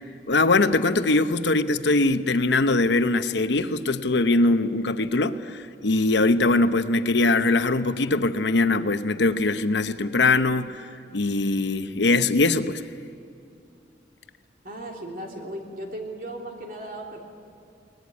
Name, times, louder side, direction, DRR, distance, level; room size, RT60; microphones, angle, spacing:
voice 1, 0.3-10.9 11.1-12.8, left 2 dB, 80° left, 0.9 m, -22 dB
voice 2, 14.6-17.2, right 1 dB, 50° right, 3.3 m, -36 dB
23.0 x 18.5 x 9.7 m
head